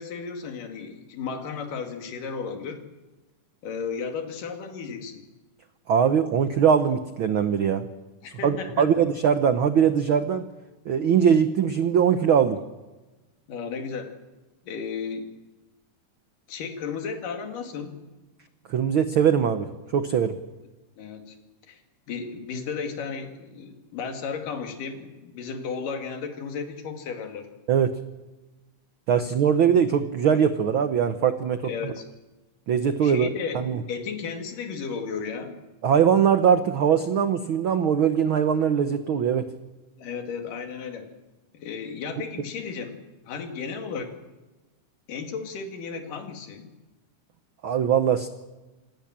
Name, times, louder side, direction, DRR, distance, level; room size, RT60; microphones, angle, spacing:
voice 1, 0.0-2.9 3.6-5.3 8.2-8.9 13.5-14.1 14.7-15.3 16.5-18.0 21.0-21.4 21.7-21.8 22.1-27.5 31.6-32.1 33.0-35.6 40.0-41.1 41.5-44.1 45.1-46.7, left 5 dB, 85° left, 5 dB, 3.8 m, -34 dB
voice 2, 5.9-7.9 8.4-10.5 10.9-12.6 18.7-19.7 19.9-20.4 27.7-28.0 29.1-31.7 32.7-33.3 33.5-33.8 35.8-39.5 47.6-48.3, right 8 dB, 85° right, 10 dB, 1.1 m, -21 dB
27.0 x 17.5 x 7.4 m, 1.1 s
omnidirectional pair, 3.7 m